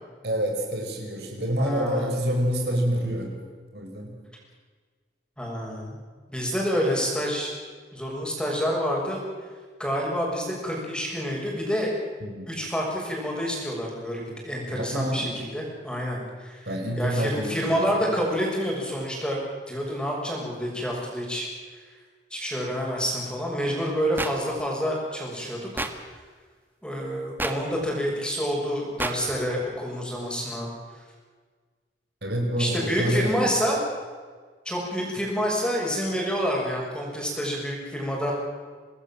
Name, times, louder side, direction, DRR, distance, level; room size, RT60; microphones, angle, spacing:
voice 1, 0.2-3.3 3.7-4.2 12.2-12.5 14.7-15.4 16.6-18.0 32.2-33.5, equal, 65° right, 2 dB, 5.0 m, -27 dB
voice 2, 1.6-2.1 5.4-6.0 6.3-7.5 7.9-9.2 9.8-11.9 12.5-16.7 17.0-19.4 19.7-21.5 21.7-21.8 22.3-25.7 26.8-30.7 32.6-33.8 34.6-38.3, equal, 5° left, -2 dB, 6.6 m, -28 dB
sound 1, 24.2-24.3 25.8-25.9 27.4-27.5 29.0-29.1, right 2 dB, 10° right, 1.5 m, -28 dB
27.0 x 19.0 x 7.6 m, 1.6 s
head